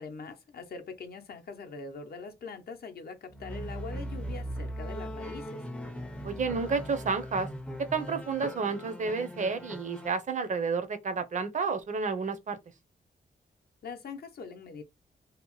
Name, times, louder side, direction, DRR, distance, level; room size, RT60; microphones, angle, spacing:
voice 1, 0.0-5.6 13.8-14.8, left 4 dB, 60° left, 0.6 m, -42 dB
sound 1, 3.3-10.1, equal, 5° left, 0.4 m, -39 dB
voice 2, 6.2-7.5 7.9-12.6, right 5 dB, 45° right, 0.5 m, -30 dB
2.8 x 2.0 x 2.9 m
wide cardioid pair, 125°, 18 cm